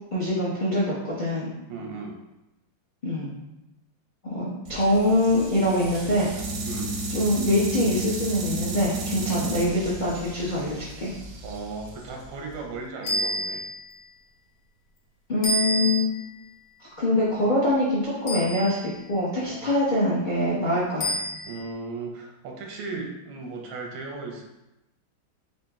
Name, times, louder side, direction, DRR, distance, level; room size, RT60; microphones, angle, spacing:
voice 1, 0.1-1.5 3.0-3.3 4.2-6.3 7.1-11.1 15.3-16.1 16.8-21.1 22.9-23.0, left 1 dB, 75° left, -8 dB, 0.4 m, -24 dB
voice 2, 1.7-2.2 6.7-6.9 11.4-13.6 19.4-19.7 21.5-24.4, right 3 dB, 90° right, 1 dB, 1.6 m, -36 dB
sound 1, 4.6-12.7, right 2 dB, 70° right, 0.8 m, -33 dB
sound 2, 13.0-13.9 15.4-16.3 18.3-19.0 21.0-21.7, right 1 dB, 55° left, 1.2 m, -29 dB
4.3 x 2.7 x 3.4 m, 0.95 s
omnidirectional pair, 2.3 m